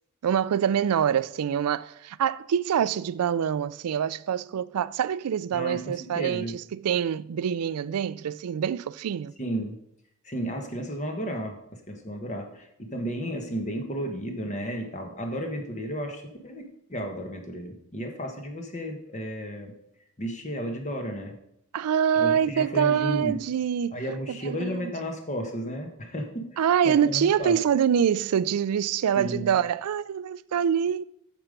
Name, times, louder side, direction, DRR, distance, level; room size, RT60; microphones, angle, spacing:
voice 1, 0.2-9.3 21.7-24.0 24.5-24.9 26.6-31.0, right 8 dB, 90° right, 0.4 m, -25 dB
voice 2, 5.5-6.5 9.4-9.8 10.2-16.6 16.9-19.7 20.2-21.3 22.2-23.4 23.9-27.6 29.1-29.5, equal, 35° left, 1.3 m, -33 dB
8.8 x 7.0 x 5.1 m
head